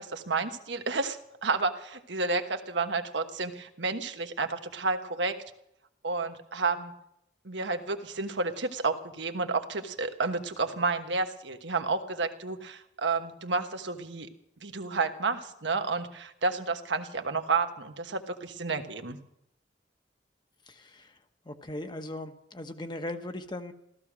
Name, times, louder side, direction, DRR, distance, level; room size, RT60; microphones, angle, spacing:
voice 1, 0.0-5.4 6.0-6.9 7.4-14.3 14.6-19.2, right 3 dB, 90° right, 7 dB, 1.3 m, -31 dB
voice 2, 20.7-21.2 21.4-23.7, left 1 dB, 25° left, 8 dB, 1.0 m, -38 dB
15.5 x 14.0 x 6.2 m, 0.78 s
head